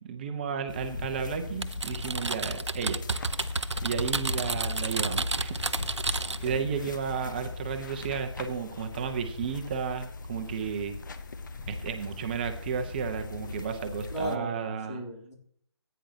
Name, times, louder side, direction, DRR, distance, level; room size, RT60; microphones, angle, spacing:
voice 1, 0.0-3.0 3.8-5.5 6.4-11.0 11.7-15.0, right 6 dB, 20° right, 6 dB, 0.8 m, -33 dB
sound 1, 0.7-14.4, left 3 dB, 45° left, 0.8 m, -38 dB
Typing, 1.6-6.5, right 3 dB, 80° right, 0.6 m, -31 dB
voice 2, 14.1-15.3, equal, 90° left, 0 dB, 3.1 m, -36 dB
16.0 x 9.3 x 2.8 m, 0.63 s
figure-of-eight pair, 150°, 15 cm